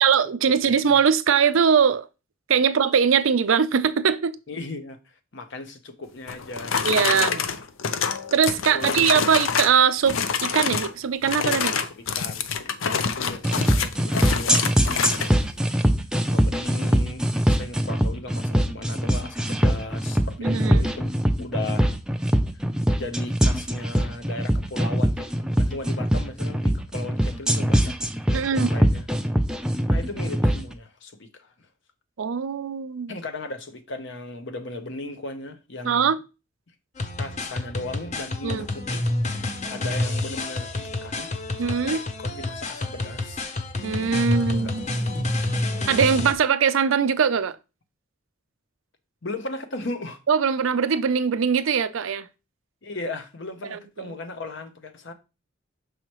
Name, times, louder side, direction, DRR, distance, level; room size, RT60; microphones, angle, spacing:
voice 1, 0.0-2.1 2.5-4.4 6.8-7.4 8.3-11.8 20.4-20.9 28.3-28.7 32.2-33.1 35.8-36.2 38.4-38.7 41.6-42.0 43.8-45.0 45.9-47.6 50.3-52.3 53.7-53.8 54.0-54.1, right 6 dB, 80° right, 0.5 m, -21 dB
voice 2, 4.5-6.8 7.1-7.4 8.7-9.3 11.5-15.4 16.3-21.1 21.4-21.9 22.5-22.6 22.9-27.9 28.3-29.1 29.9-31.5 33.1-36.2 37.2-39.1 39.7-41.3 41.6-43.4 44.2-44.7 45.0-45.3 49.2-50.2 52.8-55.1, left 2 dB, 65° left, 0.9 m, -37 dB
sound 1, 6.3-9.8 10.1-10.9 11.2-15.3, left 6 dB, 80° left, 0.6 m, -26 dB
sound 2, 13.4-30.6, equal, 5° right, 0.4 m, -22 dB
sound 3, 37.0-46.3, left 2 dB, 35° left, 0.7 m, -28 dB
6.3 x 4.9 x 3.0 m
head